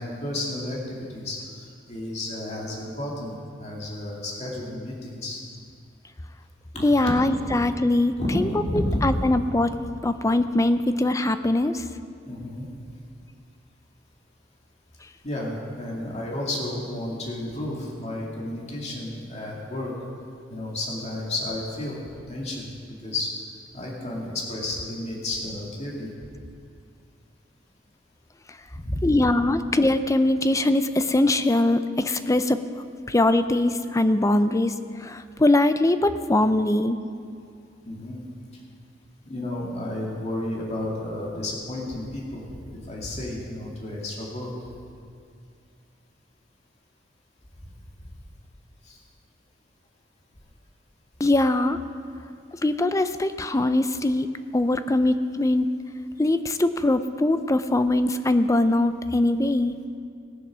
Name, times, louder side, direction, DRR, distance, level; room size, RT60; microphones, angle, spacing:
voice 1, 0.0-5.4 6.7-7.2 8.2-9.3 12.3-12.7 15.2-19.9 20.5-22.0 22.3-22.7 23.0-23.3 23.7-26.1 28.7-29.1 37.8-38.2 39.2-44.5 48.8-49.0, left 1 dB, 35° left, -3 dB, 2.4 m, -31 dB
voice 2, 6.8-8.5 9.0-9.7 10.0-11.8 29.0-32.6 33.1-37.0 51.2-51.8 52.6-55.7 56.2-59.8, left 2 dB, 15° left, 10 dB, 0.5 m, -22 dB
19.5 x 7.1 x 6.2 m, 2.4 s
head